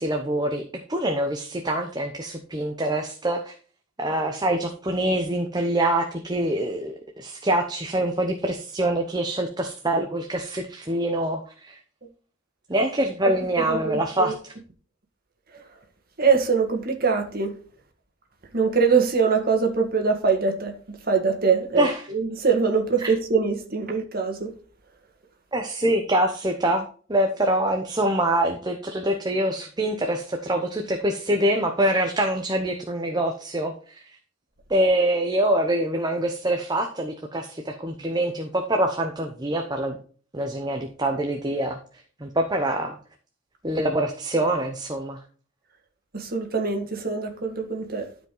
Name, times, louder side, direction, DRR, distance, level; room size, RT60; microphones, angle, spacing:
voice 1, 0.0-3.5 4.0-11.8 12.7-14.5 21.8-22.0 23.0-23.1 25.5-34.2 34.7-40.0 40.3-41.8 42.2-43.0 43.6-45.2, right 1 dB, 20° right, 0.9 m, -25 dB
voice 2, 13.2-14.3 15.5-15.6 16.2-17.6 18.5-24.5 46.1-48.1, right 5 dB, 45° right, 2.0 m, -23 dB
12.5 x 5.2 x 3.9 m
head